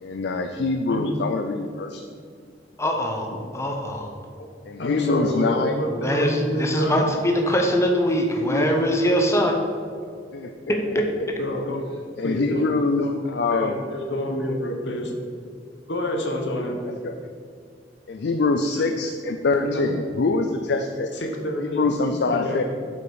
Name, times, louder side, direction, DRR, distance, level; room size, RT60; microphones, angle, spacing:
voice 1, 0.0-2.1 4.7-5.8 8.5-8.7 10.3-11.0 12.2-13.7 16.9-17.1 18.1-21.1 21.6-22.6, left 3 dB, 70° left, 5 dB, 0.4 m, -24 dB
voice 2, 2.8-4.1 5.9-9.6 10.7-11.1, equal, 15° left, 2 dB, 0.9 m, -22 dB
voice 3, 4.8-7.0 11.4-11.8 12.2-12.6 13.0-13.1 13.5-15.1 15.9-16.8 19.6-19.8 21.1-21.9 22.3-22.6, equal, 85° left, 2 dB, 1.2 m, -27 dB
8.0 x 5.8 x 4.8 m, 2.2 s
head